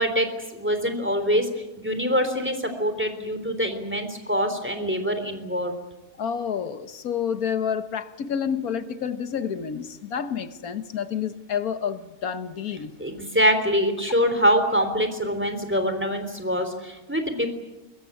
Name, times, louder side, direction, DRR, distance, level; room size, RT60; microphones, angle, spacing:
voice 1, 0.0-1.5 1.8-5.7 13.0-17.5, equal, 10° right, 3.5 m, -24 dB
voice 2, 6.2-12.9, left 7 dB, 90° left, 1.7 m, -29 dB
22.0 x 22.0 x 9.6 m
omnidirectional pair, 1.5 m